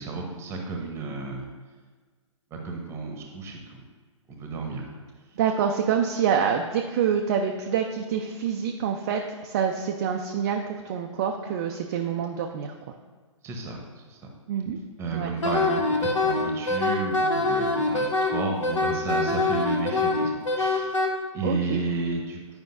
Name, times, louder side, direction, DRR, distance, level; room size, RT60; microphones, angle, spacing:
voice 1, 0.0-1.5 2.5-3.8 4.3-4.9 13.4-14.2 15.0-21.0 21.3-22.4, right 3 dB, 15° right, 2 dB, 1.0 m, -32 dB
voice 2, 5.4-12.7 14.5-14.8 15.1-15.3 21.4-21.8, right 7 dB, 35° right, 3 dB, 0.4 m, -26 dB
Wind instrument woodwind instrument, 15.4-21.1, left 2 dB, 70° left, 1.0 m, -24 dB
9.4 x 5.1 x 2.6 m, 1.5 s
figure-of-eight pair, 120°, 16 cm